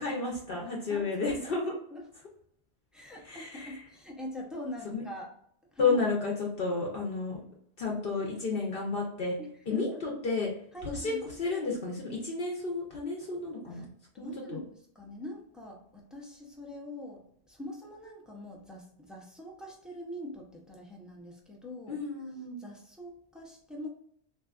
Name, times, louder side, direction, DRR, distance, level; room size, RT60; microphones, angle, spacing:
voice 1, 0.0-1.7 3.2-3.7 4.8-5.0 5.8-7.4 7.8-9.4 9.7-10.5 10.8-13.9 14.2-14.6 21.9-22.6, left 4 dB, 60° left, -2 dB, 0.8 m, -32 dB
voice 2, 0.9-1.6 1.9-2.0 2.9-5.3 5.7-6.0 9.4-10.2 10.7-11.2 13.7-13.9 14.1-22.0 22.6-23.9, left 1 dB, ahead, -2 dB, 0.3 m, -43 dB
3.3 x 2.7 x 2.3 m, 0.68 s
omnidirectional pair, 1.1 m